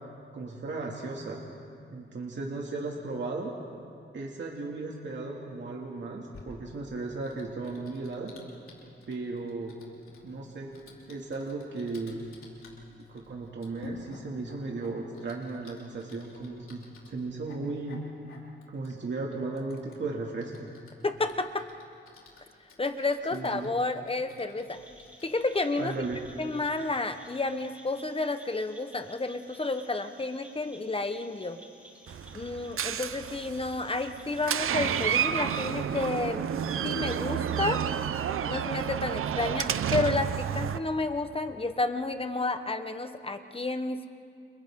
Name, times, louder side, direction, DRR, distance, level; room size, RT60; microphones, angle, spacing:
voice 1, 0.3-1.4 1.9-3.5 4.1-8.3 9.1-9.8 10.2-10.7 11.1-12.2 13.1-16.8 17.1-18.0 18.7-20.7 23.3-23.7 25.8-26.2, right 3 dB, 60° right, -2 dB, 2.5 m, -36 dB
Typing, 6.3-26.2, left 2 dB, 85° left, 4.1 m, -52 dB
voice 2, 21.0-21.7 22.8-24.8 25.2-26.0 26.4-31.6 32.3-36.4 36.8-37.8 38.5-44.1, left 3 dB, 25° left, 8 dB, 1.2 m, -31 dB
sound 1, 24.7-35.2, equal, 5° right, 4.0 m, -54 dB
Door, 32.1-40.8, right 8 dB, 90° right, 0.8 m, -30 dB
29.5 x 29.5 x 3.8 m, 2.4 s
cardioid pair, 95°, 21 cm